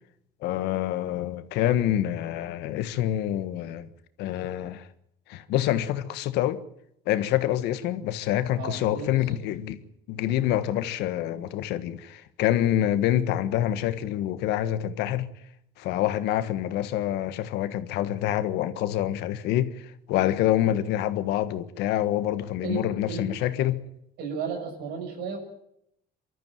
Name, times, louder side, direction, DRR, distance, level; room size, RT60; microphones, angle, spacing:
voice 1, 0.4-3.9 4.2-4.9 5.3-6.6 7.1-9.8 10.1-15.3 15.8-19.7 20.1-23.8, left 12 dB, 90° left, 1.5 m, -26 dB
voice 2, 8.6-9.4 22.6-23.2 24.2-25.4, right 6 dB, 90° right, 6.6 m, -34 dB
24.5 x 13.5 x 9.2 m
cardioid pair, 110°, 17 cm